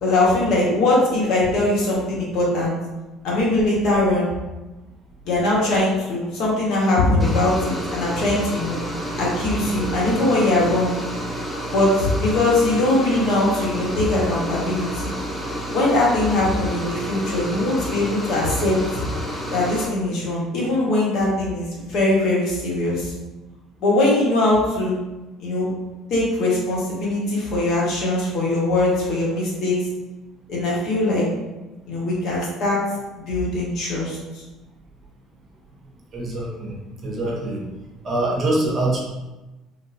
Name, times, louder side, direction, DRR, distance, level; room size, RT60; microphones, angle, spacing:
voice 1, 0.0-2.7 3.2-4.3 5.2-8.8 9.2-10.9 11.7-15.0 15.7-18.8 19.5-23.1 23.8-25.0 25.4-25.7 26.1-29.8 30.5-31.2 31.9-32.8 33.3-34.4, left 2 dB, 65° left, -5 dB, 1.3 m, -21 dB
sound 1, 7.2-19.9, equal, 5° left, 0.8 m, -30 dB
voice 2, 36.1-36.7 37.0-37.6 38.0-39.0, right 2 dB, 40° right, -3 dB, 1.0 m, -24 dB
3.7 x 2.5 x 2.7 m, 1.1 s
cardioid pair, 100°, 0 cm